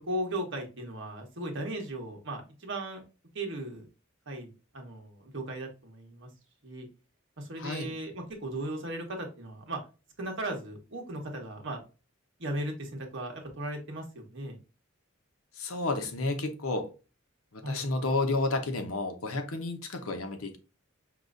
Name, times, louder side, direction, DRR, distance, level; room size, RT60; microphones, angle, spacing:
voice 1, 0.0-3.0 3.3-3.9 4.3-6.3 6.6-6.9 7.4-9.8 10.2-11.8 12.4-14.6 17.6-17.9, right 1 dB, 60° right, 1.3 m, -37 dB
voice 2, 7.6-7.9 15.6-16.9 17.5-20.6, left 2 dB, 85° left, 0.9 m, -31 dB
5.9 x 3.0 x 2.6 m
head